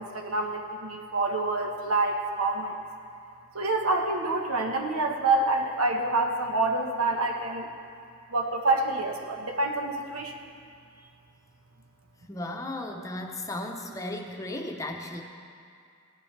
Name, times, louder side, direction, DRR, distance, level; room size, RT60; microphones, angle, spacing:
voice 1, 0.0-2.7 3.5-7.7 8.3-10.4, right 2 dB, 80° right, 2 dB, 1.2 m, -27 dB
voice 2, 12.3-15.2, left 1 dB, 15° left, 2 dB, 0.8 m, -35 dB
17.0 x 11.0 x 3.3 m, 2.3 s
head